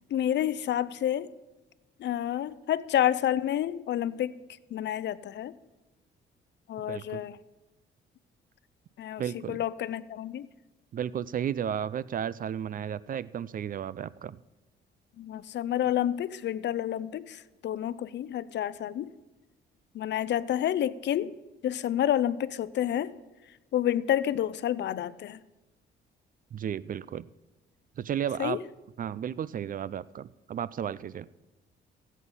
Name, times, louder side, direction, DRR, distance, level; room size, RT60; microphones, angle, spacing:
voice 1, 0.1-1.3 2.0-4.4 4.7-5.5 6.7-7.4 9.0-10.5 15.2-19.1 19.9-21.3 21.6-23.2 23.7-25.4 28.4-28.6, left 11 dB, 60° left, 17 dB, 0.6 m, -29 dB
voice 2, 6.8-7.2 9.2-9.6 10.9-14.4 26.5-27.3 28.0-28.6 29.0-31.3, right 9 dB, 45° right, 19 dB, 0.4 m, -33 dB
15.5 x 8.3 x 5.5 m, 1.1 s
cardioid pair, 90°, 20 cm